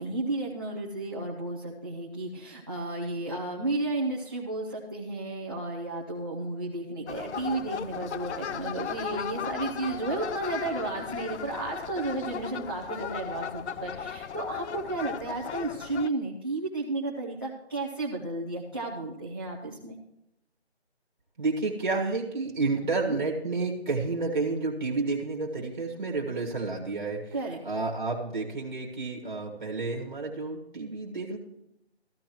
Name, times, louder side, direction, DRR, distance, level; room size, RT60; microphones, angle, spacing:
voice 1, 0.0-20.0 23.1-23.2 27.3-27.6, right 2 dB, 20° right, -3 dB, 0.7 m, -33 dB
sound 1, 7.1-16.1, left 7 dB, 85° left, 0.5 m, -36 dB
voice 2, 21.4-27.3 27.6-31.4, right 3 dB, 45° right, 0 dB, 1.6 m, -30 dB
14.5 x 13.5 x 3.0 m, 0.84 s
figure-of-eight pair, 175°, 33 cm